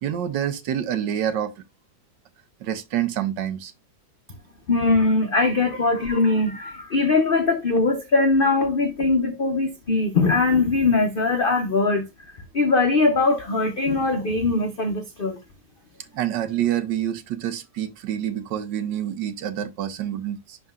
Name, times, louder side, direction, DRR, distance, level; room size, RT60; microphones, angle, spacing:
voice 1, 0.0-1.5 2.6-3.7 16.1-20.6, right 10 dB, 70° right, 1.3 m, -27 dB
voice 2, 4.7-15.4, left 3 dB, 70° left, 0.5 m, -21 dB
11.0 x 3.9 x 2.4 m
omnidirectional pair, 2.1 m